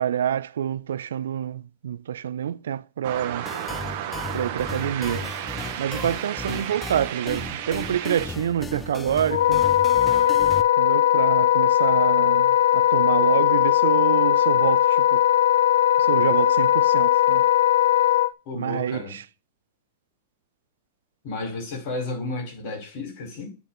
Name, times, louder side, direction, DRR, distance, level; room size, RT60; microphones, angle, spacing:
voice 1, 0.0-3.5 4.3-5.3 5.8-9.7 10.8-15.2 16.0-17.5 18.5-19.2, right 9 dB, 90° right, 0.3 m, -27 dB
sound 1, 3.0-8.3, right 11 dB, 55° right, 1.0 m, -33 dB
sound 2, 3.5-10.6, left 4 dB, 15° left, 0.4 m, -36 dB
Wind instrument woodwind instrument, 9.3-18.3, left 12 dB, 90° left, 0.4 m, -19 dB
voice 2, 18.4-19.2 21.2-23.5, left 2 dB, 45° left, 4.7 m, -32 dB
8.3 x 3.8 x 4.2 m
supercardioid pair, 140°, 0 cm